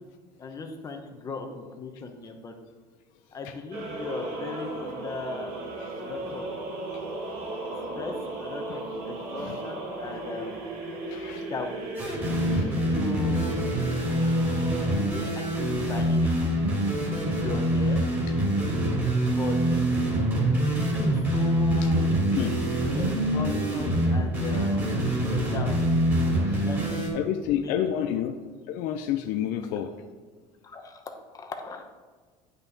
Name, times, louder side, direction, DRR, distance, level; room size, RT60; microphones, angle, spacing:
voice 1, 0.4-2.5 3.3-5.5 6.0-6.5 7.9-10.6 11.5-11.7 12.9-13.5 14.8-16.4 17.4-18.0 19.3-19.8 20.8-22.0 22.9-24.9 25.3-25.7 26.6-27.7 28.0-28.2 30.6-31.8, left 4 dB, 25° left, 5 dB, 0.9 m, -38 dB
sound 1, 3.7-15.0, right 2 dB, 75° right, 2.2 m, -36 dB
voice 2, 11.1-11.4 12.4-12.8 21.8-21.9 22.3-22.6 26.5-26.7 27.1-28.4 28.7-29.9, left 10 dB, 65° left, 5 dB, 0.5 m, -30 dB
sound 2, 11.9-27.1, right 1 dB, 15° right, 2.5 m, -25 dB
9.3 x 5.8 x 4.0 m, 1.5 s
cardioid pair, 145°, 15 cm